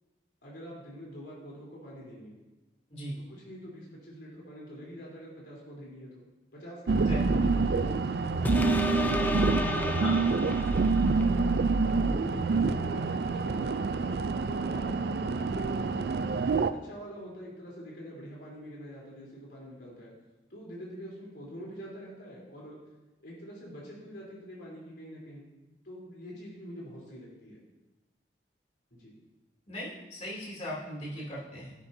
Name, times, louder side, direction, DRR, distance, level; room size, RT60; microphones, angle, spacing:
voice 1, 0.4-2.4 3.3-6.2 6.5-9.4 9.7-10.1 11.2-11.5 11.9-14.1 14.4-16.0 16.7-20.1 20.5-22.8 23.2-25.5 25.8-27.6 28.9-29.1, equal, 80° left, -4 dB, 3.6 m, -45 dB
sound 1, 6.9-16.7, right 4 dB, 60° right, 0.4 m, -27 dB
sound 2, 8.4-11.4 11.9-12.0, left 1 dB, 10° left, 0.5 m, -32 dB
voice 2, 29.7-31.7, left 1 dB, 40° left, -5 dB, 2.9 m, -38 dB
10.5 x 9.9 x 2.7 m, 1.1 s
head